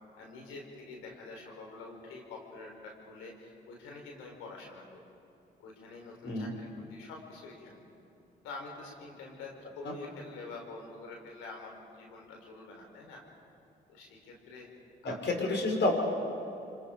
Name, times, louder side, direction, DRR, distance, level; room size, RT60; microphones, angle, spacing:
voice 1, 0.2-5.0 5.6-7.8 8.4-13.2 13.9-14.7 15.0-15.6, left 3 dB, 85° left, 0 dB, 4.5 m, -47 dB
voice 2, 6.2-6.5 9.8-9.9 15.0-16.0, left 2 dB, 55° left, 2 dB, 5.2 m, -29 dB
28.0 x 26.0 x 5.1 m, 2.8 s
supercardioid pair, 50°, 21 cm